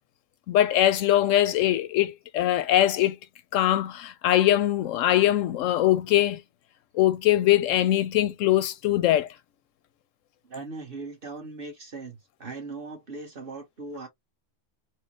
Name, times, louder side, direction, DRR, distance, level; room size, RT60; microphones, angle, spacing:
voice 1, 0.5-3.2 3.5-6.4 6.9-9.3, left 13 dB, 85° left, 1.0 m, -22 dB
voice 2, 10.5-14.1, right 3 dB, 45° right, 1.5 m, -39 dB
4.8 x 2.1 x 3.1 m
omnidirectional pair, 1.3 m